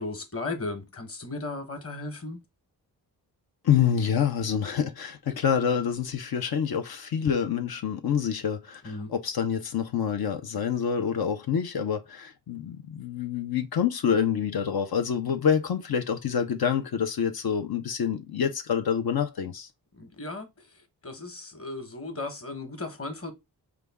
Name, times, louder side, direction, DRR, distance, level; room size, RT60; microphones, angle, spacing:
voice 1, 0.0-2.4 8.8-9.1 19.9-20.5 21.0-23.3, left 2 dB, 35° left, 1.2 m, -35 dB
voice 2, 3.6-19.7, left 7 dB, 70° left, 0.8 m, -27 dB
5.0 x 2.3 x 3.4 m
wide cardioid pair, 95°, 39 cm